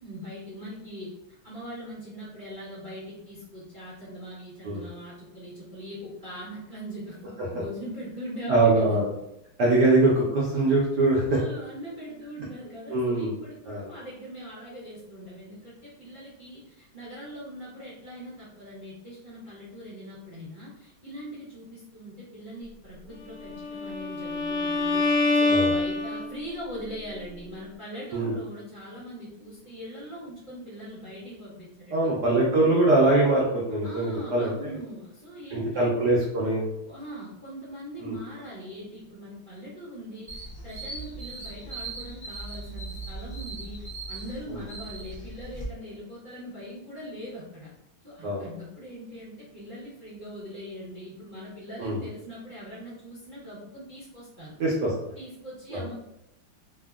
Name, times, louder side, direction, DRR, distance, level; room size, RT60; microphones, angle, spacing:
voice 1, 0.0-9.0 11.3-25.1 25.3-32.1 33.8-36.2 36.9-47.7 48.0-54.6 55.1-56.0, equal, 55° right, -11 dB, 0.5 m, -41 dB
voice 2, 8.5-9.1 9.6-11.4 12.9-13.4 13.6-13.9 25.5-25.7 28.1-28.3 31.9-34.7 35.5-36.6 38.0-38.1 44.5-44.6 48.2-48.5 51.8-52.0 54.6-54.9 55.7-55.8, right 2 dB, 75° right, -5 dB, 1.0 m, -23 dB
Bowed string instrument, 23.4-26.6, left 3 dB, 85° left, 0.8 m, -25 dB
sound 1, 40.3-45.6, right 3 dB, 10° right, 0.5 m, -39 dB
3.5 x 2.1 x 2.3 m, 0.83 s
omnidirectional pair, 2.3 m